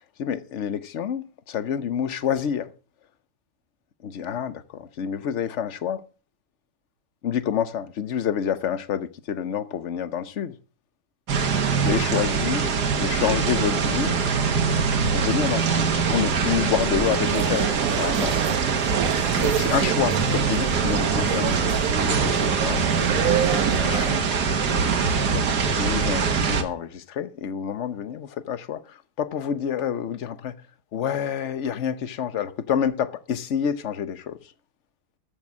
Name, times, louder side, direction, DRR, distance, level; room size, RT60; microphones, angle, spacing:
voice 1, 0.2-2.7 4.0-6.0 7.2-10.5 11.8-14.1 15.1-18.4 19.3-22.8 23.3-24.2 25.3-25.5 25.8-28.8 29.2-30.5 30.9-34.4, left 8 dB, 55° left, 1.1 m, -28 dB
sound 1, 11.3-26.6, right 5 dB, 85° right, 2.0 m, -23 dB
sound 2, 17.2-24.1, right 10 dB, 65° right, 1.1 m, -28 dB
14.5 x 7.1 x 6.2 m
omnidirectional pair, 1.7 m